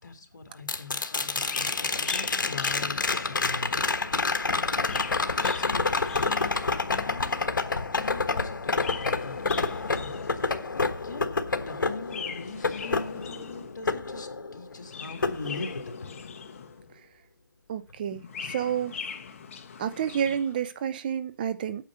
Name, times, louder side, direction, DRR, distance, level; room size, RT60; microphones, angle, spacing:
voice 1, 0.0-3.8 5.2-5.9 6.2-7.5 7.9-11.3 11.7-16.2, left 4 dB, 65° left, 2.1 m, -42 dB
sound 1, 0.7-14.8 15.2-16.2 18.5-18.6, left 4 dB, 80° left, 1.3 m, -28 dB
Chirp tweet, 1.4-3.9 4.6-7.0 8.6-10.7 12.0-13.9 14.7-17.0 18.0-20.6, left 6 dB, 40° left, 1.0 m, -42 dB
voice 2, 17.7-18.2 18.5-19.0 19.8-21.8, right 9 dB, 25° right, 0.5 m, -29 dB
8.8 x 5.9 x 7.1 m
hypercardioid pair, 160°, 11 cm